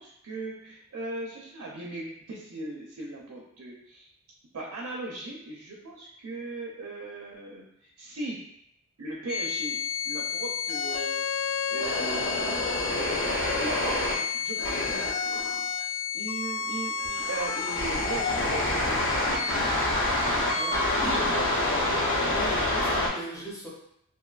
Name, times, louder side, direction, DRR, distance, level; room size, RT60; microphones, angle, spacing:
voice 1, 0.0-4.1 4.5-8.4 9.0-9.8 10.0-12.8 13.5-15.7 16.1-19.8 21.0-21.5, right 2 dB, 85° right, -2 dB, 0.4 m, -38 dB
sound 1, 9.3-23.1, left 3 dB, 60° left, 0.6 m, -28 dB
voice 2, 20.2-21.3 22.2-23.7, right 1 dB, 15° left, -5 dB, 0.6 m, -38 dB
2.6 x 2.2 x 2.3 m, 0.73 s
head